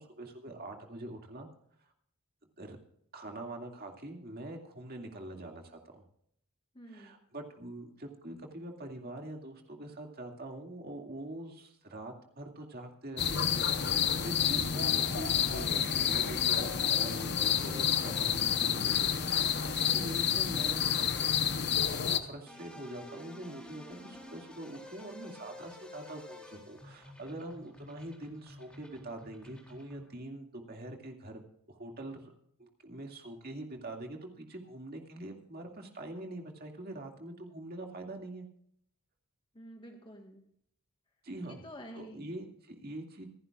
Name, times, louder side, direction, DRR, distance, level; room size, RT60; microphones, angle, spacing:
voice 1, 0.0-1.5 1.8-1.9 2.6-2.8 3.1-6.0 6.9-13.5 13.8-21.3 22.1-31.4 31.7-32.3 32.6-38.4 41.2-41.6 41.9-43.2, right 1 dB, 45° right, 2 dB, 2.3 m, -44 dB
voice 2, 6.7-7.2 19.8-20.4 39.5-40.4 41.5-42.3, equal, 20° left, 2 dB, 1.5 m, -49 dB
sound 1, 13.2-22.2, left 8 dB, 50° left, 0.9 m, -29 dB
sound 2, 14.8-30.1, left 1 dB, 5° left, 4.0 m, -51 dB
25.5 x 11.5 x 2.4 m, 0.68 s
head